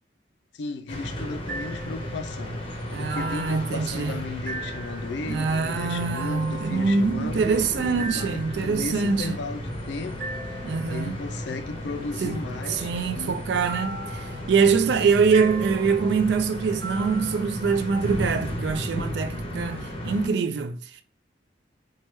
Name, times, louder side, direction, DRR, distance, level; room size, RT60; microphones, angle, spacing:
voice 1, 0.5-7.5 7.8-10.6 10.9-13.4 14.9-15.5, left 3 dB, 75° left, 0.4 m, -35 dB
sound 1, 0.9-20.3, equal, 30° left, 0.6 m, -34 dB
sound 2, 1.4-17.4, right 2 dB, 50° right, 1.6 m, -40 dB
voice 2, 2.9-4.2 5.3-9.4 10.6-11.2 12.2-12.4 12.7-21.0, right 5 dB, 65° right, 0.3 m, -24 dB
3.1 x 2.2 x 3.0 m
head